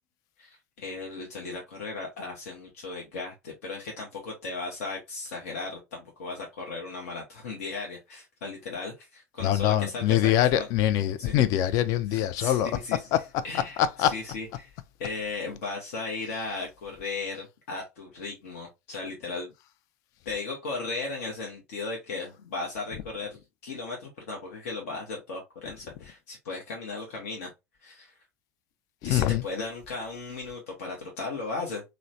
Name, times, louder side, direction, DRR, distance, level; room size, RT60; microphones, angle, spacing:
voice 1, 0.4-10.7 11.2-11.3 12.1-13.0 13.4-14.7 15.0-19.5 20.2-27.5 27.8-28.2 29.0-31.8, left 3 dB, 65° left, 0.7 m, -36 dB
voice 2, 9.4-14.2 29.0-29.4, left 12 dB, 50° left, 0.3 m, -24 dB
3.0 x 2.0 x 2.6 m
figure-of-eight pair, 75°, 8 cm